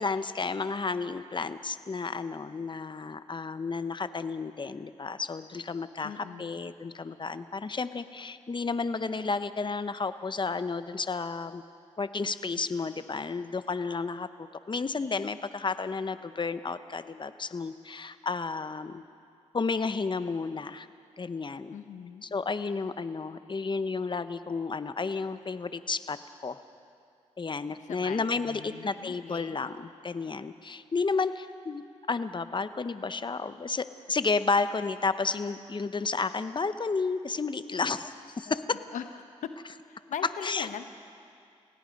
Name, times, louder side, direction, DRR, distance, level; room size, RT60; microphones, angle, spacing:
voice 1, 0.0-11.6 12.0-19.0 19.5-20.9 21.2-21.7 22.2-26.2 26.4-26.6 27.4-31.8 32.1-38.8 40.4-40.7, left 4 dB, 40° left, 12 dB, 0.9 m, -32 dB
voice 2, 6.0-6.6 21.7-22.2 27.9-29.6 38.5-38.6 38.9-39.0 39.4-39.5 39.9-40.9, left 8 dB, 85° left, 9 dB, 0.9 m, -40 dB
28.5 x 17.5 x 5.3 m, 2.4 s
cardioid pair, 50°, 13 cm